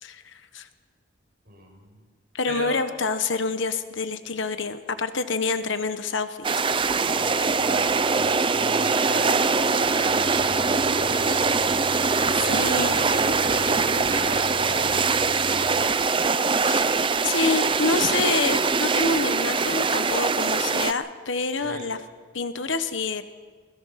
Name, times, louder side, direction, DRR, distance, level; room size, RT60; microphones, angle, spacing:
voice 1, 0.0-0.7 2.3-6.5 12.4-12.9 16.7-16.9 17.2-22.0 22.3-23.2, left 4 dB, 65° left, 10 dB, 1.1 m, -27 dB
voice 2, 1.4-2.0 2.5-2.8 7.1-11.9 12.4-15.3 21.6-21.9, right 1 dB, 45° right, 0 dB, 6.7 m, -36 dB
sound 1, 6.4-20.9, right 4 dB, 25° right, 0.6 m, -23 dB
Bus, 10.1-15.8, left 1 dB, 35° left, 5.3 m, -42 dB
21.5 x 21.0 x 5.8 m, 1.5 s
head